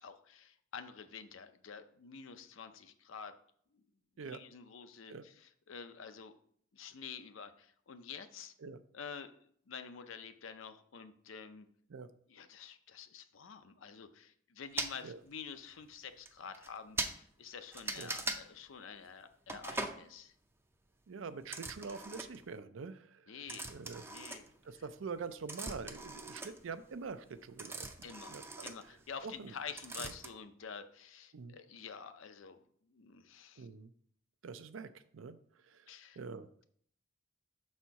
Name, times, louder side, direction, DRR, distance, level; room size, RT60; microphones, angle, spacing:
voice 1, 0.0-3.3 3.7-3.8 4.2-6.4 6.7-8.5 8.9-9.3 9.7-11.7 12.3-20.3 23.3-23.7 24.1-24.4 28.0-32.6 32.9-33.7 35.9-36.2, left 6 dB, 75° left, 9 dB, 0.6 m, -48 dB
sound 1, 14.8-14.9 15.8-15.9 16.2-16.3 16.5-16.7 17.0-17.1 17.7-18.4 19.5-20.0 21.4-22.5 23.5-24.9 25.2-29.5 29.8-30.3, right 2 dB, 10° right, 0.4 m, -41 dB
voice 2, 21.1-23.3 23.7-24.0 24.6-28.7 29.2-29.5 30.0-30.1 31.3-31.6 33.6-33.9 34.4-35.4 35.7-35.9 36.2-36.5, right 5 dB, 70° right, 12 dB, 0.5 m, -45 dB
6.2 x 4.3 x 4.6 m, 0.63 s
head